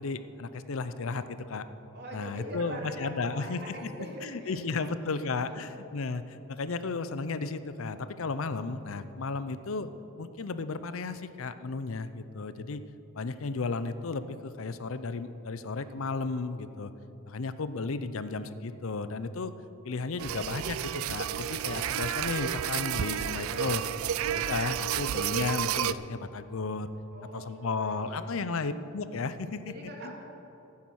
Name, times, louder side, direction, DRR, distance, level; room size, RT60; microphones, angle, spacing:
voice 1, 0.0-1.7 2.1-3.9 4.2-9.9 10.2-12.8 13.1-16.9 17.3-19.5 19.8-23.9 24.2-26.9 27.3-29.7 30.0-30.1, left 4 dB, 70° left, 12 dB, 0.6 m, -34 dB
voice 2, 1.9-5.7 27.1-28.2 29.7-30.2, right 1 dB, 55° right, 0 dB, 2.4 m, -43 dB
sound 1, 20.2-25.9, right 10 dB, 80° right, 0.4 m, -31 dB
14.5 x 9.4 x 6.3 m, 3.0 s
head